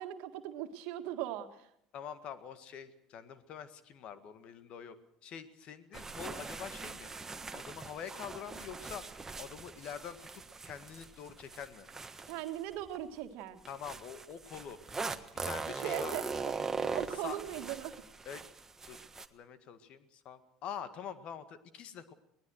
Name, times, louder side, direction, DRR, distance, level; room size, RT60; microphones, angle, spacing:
voice 1, 0.0-1.7 12.3-13.6 15.8-16.2 16.7-18.0, right 12 dB, 65° right, 7 dB, 1.8 m, -39 dB
voice 2, 1.9-5.0 5.2-7.1 7.5-11.9 13.7-14.8 15.4-16.1 16.9-17.4 18.3-18.4 18.9-19.0 19.3-22.1, left 8 dB, 55° left, 12 dB, 1.8 m, -45 dB
sound 1, 5.9-13.0 13.6-19.3, right 4 dB, 20° right, 1.5 m, -41 dB
23.0 x 18.5 x 6.5 m, 0.72 s
hypercardioid pair, 75°, 2 cm